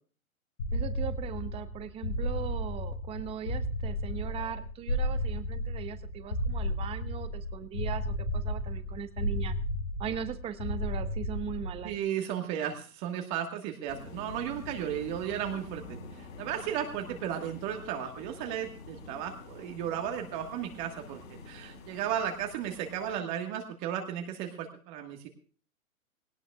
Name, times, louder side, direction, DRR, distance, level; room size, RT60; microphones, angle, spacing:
sound 1, 0.6-12.0, equal, 75° left, 3.8 m, -33 dB
voice 1, 0.7-9.5 10.0-11.9, right 9 dB, 15° right, 11 dB, 0.8 m, -39 dB
voice 2, 11.8-25.3, right 9 dB, 35° right, 3 dB, 1.6 m, -35 dB
sound 2, 13.9-23.2, left 3 dB, 60° left, 5.2 m, -47 dB
18.5 x 18.0 x 2.4 m, 0.40 s
hypercardioid pair, 130°, 43 cm